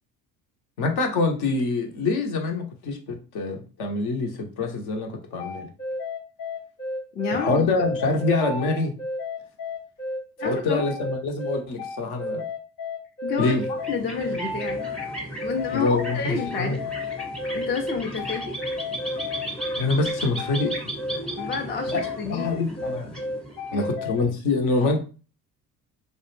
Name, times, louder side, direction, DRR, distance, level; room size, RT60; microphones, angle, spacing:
voice 1, 0.8-5.7 7.3-8.9 10.4-12.4 13.4-13.6 15.7-16.8 19.8-20.7 21.9-22.0 22.3-23.2 23.7-25.0, left 3 dB, 55° left, 3 dB, 0.8 m, -25 dB
sound 1, 5.4-24.2, left 2 dB, 75° left, 0.9 m, -32 dB
voice 2, 7.1-7.7 10.4-10.9 13.2-14.9 15.4-16.8 17.5-18.6 21.3-22.6 23.7-23.8, left 5 dB, 25° left, 4 dB, 0.4 m, -29 dB
sound 2, 13.6-23.9, right 1 dB, ahead, 0.8 m, -36 dB
2.4 x 2.1 x 3.0 m, 0.36 s
hypercardioid pair, 60°, 47 cm